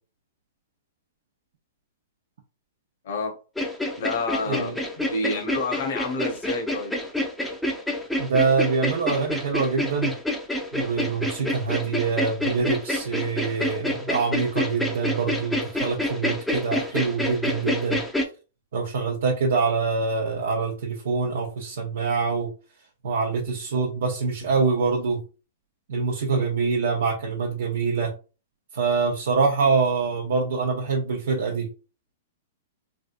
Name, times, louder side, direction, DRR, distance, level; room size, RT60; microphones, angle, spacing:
voice 1, 3.0-3.4 4.0-6.9, left 3 dB, 60° left, 3 dB, 1.1 m, -29 dB
sound 1, 3.6-18.2, left 1 dB, 5° left, 0.6 m, -28 dB
voice 2, 4.5-4.8 8.2-10.1 10.7-18.0 18.7-22.5 23.0-25.2 25.9-28.1 28.7-31.7, right 4 dB, 70° right, 0 dB, 0.6 m, -25 dB
3.3 x 2.6 x 2.4 m, 0.33 s
hypercardioid pair, 120°, 0 cm